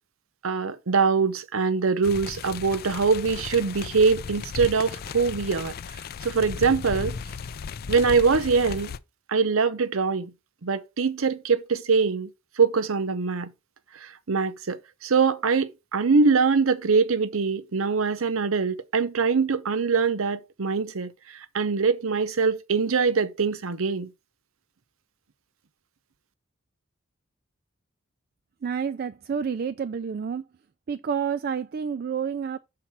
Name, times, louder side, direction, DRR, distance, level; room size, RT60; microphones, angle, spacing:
voice 1, 0.4-5.7 6.2-7.2 7.9-8.9 9.3-10.3 10.6-12.3 12.6-13.5 14.0-21.1 21.5-24.1, right 5 dB, 75° right, 0.7 m, -23 dB
sound 1, 2.0-9.0, left 6 dB, 45° left, 0.3 m, -36 dB
voice 2, 28.6-30.4 30.9-32.6, right 7 dB, 45° right, 0.3 m, -29 dB
5.9 x 4.2 x 5.9 m
head